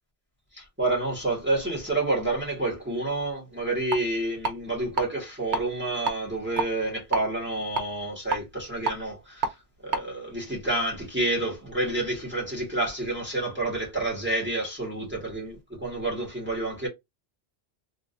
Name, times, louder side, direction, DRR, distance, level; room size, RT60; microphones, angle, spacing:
voice 1, 0.5-9.5 9.8-16.9, right 2 dB, 10° right, 1.5 m, -29 dB
sound 1, 3.9-4.0 4.4-5.0 5.4-5.6 6.0-7.2 7.7-9.5 9.9-10.0, right 4 dB, 50° right, 0.8 m, -28 dB
3.7 x 2.5 x 2.6 m
omnidirectional pair, 1.1 m